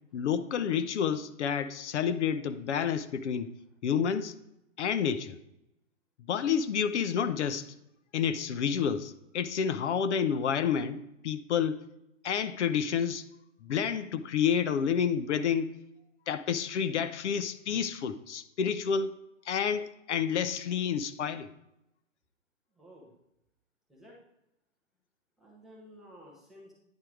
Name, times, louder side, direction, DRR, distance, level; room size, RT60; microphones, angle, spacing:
voice 1, 0.1-3.5 3.8-4.3 4.8-5.4 6.3-7.7 8.1-11.8 12.2-13.2 13.6-15.7 16.3-19.1 19.5-21.5, left 7 dB, 60° left, 12 dB, 0.6 m, -29 dB
voice 2, 22.8-23.1 23.9-24.2 25.4-26.7, equal, ahead, -4 dB, 0.5 m, -53 dB
9.6 x 4.5 x 4.9 m, 0.84 s
hypercardioid pair, 145°, 39 cm